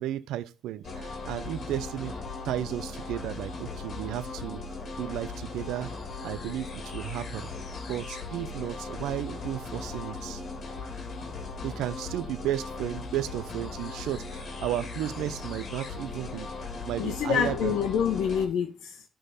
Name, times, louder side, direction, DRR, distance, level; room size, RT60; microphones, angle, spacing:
voice 1, 0.0-2.1 2.4-4.6 5.0-5.9 6.2-7.5 7.9-10.4 11.6-16.5 16.8-17.8, right 12 dB, 90° right, 0.5 m, -33 dB
sound 1, 0.8-18.5, left 3 dB, 50° left, 2.8 m, -38 dB
voice 2, 17.0-19.0, left 8 dB, 80° left, 1.1 m, -27 dB
11.0 x 3.8 x 4.2 m
cardioid pair, 90°, 0 cm